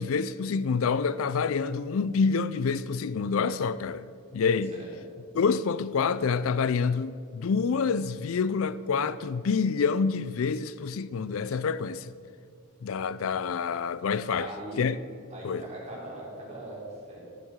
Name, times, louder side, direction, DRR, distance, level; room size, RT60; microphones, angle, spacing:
voice 1, 0.0-4.0 4.3-4.7 5.3-12.1 12.8-14.5 14.8-15.0 15.4-15.6, left 5 dB, 75° left, 0.4 m, -27 dB
voice 2, 14.3-14.8 15.3-17.2, right 1 dB, 30° right, 3.6 m, -40 dB
11.0 x 10.5 x 6.5 m
head